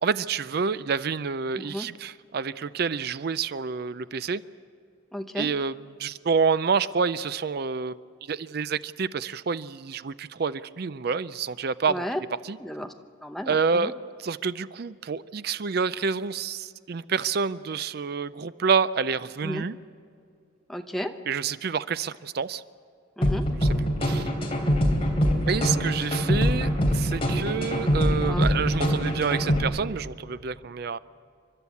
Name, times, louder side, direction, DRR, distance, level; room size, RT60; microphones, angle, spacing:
voice 1, 0.0-4.4 5.4-8.0 8.3-12.0 12.4-12.6 13.5-13.9 14.2-19.8 21.3-22.6 23.6-23.7 24.0-24.3 25.5-31.0, right 5 dB, 50° right, 15 dB, 0.4 m, -28 dB
voice 2, 1.5-1.9 5.1-5.5 11.9-12.2 12.6-12.9 13.2-13.9 19.4-19.6 20.7-21.1 23.2-23.5 28.3-28.5, equal, ahead, 5 dB, 0.8 m, -33 dB
sound 1, 23.2-29.6, equal, 30° left, 3.1 m, -24 dB
29.0 x 12.5 x 8.3 m, 2.3 s
head